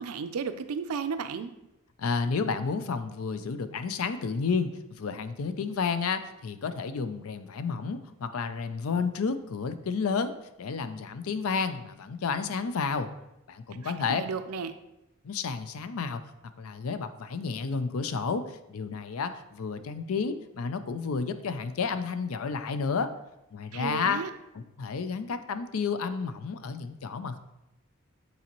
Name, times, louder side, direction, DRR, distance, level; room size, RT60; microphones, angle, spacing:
voice 1, 0.0-1.5 13.7-14.7 23.7-24.3, right 5 dB, 85° right, 10 dB, 0.5 m, -34 dB
voice 2, 2.0-4.7 5.0-10.3 10.6-13.1 13.5-14.2 15.2-16.2 16.6-23.1 23.5-24.2 24.5-27.4, left 5 dB, 75° left, 11 dB, 0.5 m, -31 dB
8.4 x 4.1 x 3.0 m, 0.90 s
head